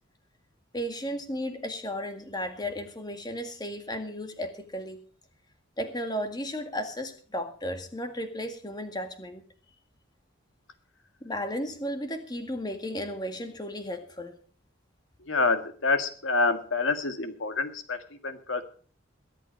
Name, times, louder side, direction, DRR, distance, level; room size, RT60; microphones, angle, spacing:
voice 1, 0.7-5.0 5.8-9.4 11.2-14.4, equal, 20° left, 7 dB, 1.9 m, -34 dB
voice 2, 15.2-18.6, left 3 dB, 75° left, 8 dB, 1.9 m, -27 dB
22.5 x 8.3 x 4.5 m, 0.44 s
head